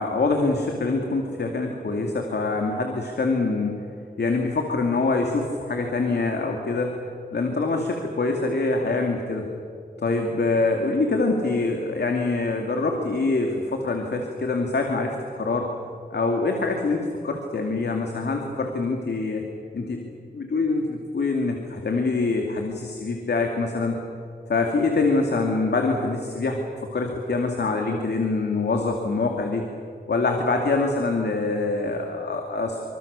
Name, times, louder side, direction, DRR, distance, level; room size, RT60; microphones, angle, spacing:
voice 1, 0.0-3.8 4.2-6.9 7.3-9.5 10.0-15.7 16.1-19.4 19.7-20.0 20.3-24.0 24.5-29.7 30.1-32.9, left 3 dB, 85° left, 2 dB, 2.5 m, -25 dB
26.0 x 25.5 x 6.9 m, 2.4 s
wide cardioid pair, 105°, 17 cm